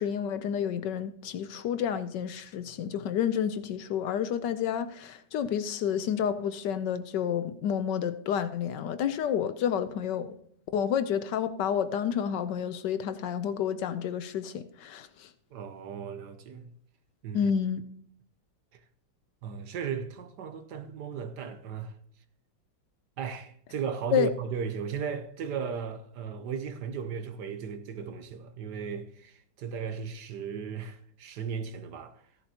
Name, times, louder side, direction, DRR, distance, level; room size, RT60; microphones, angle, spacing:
voice 1, 0.0-10.3 10.7-15.3 17.3-17.8 24.1-24.3, left 8 dB, 70° left, 1.2 m, -30 dB
voice 2, 15.5-16.7 17.2-17.5 18.7-18.8 19.4-21.9 23.2-32.2, right 7 dB, 65° right, 1.3 m, -36 dB
15.0 x 11.0 x 2.9 m
omnidirectional pair, 2.1 m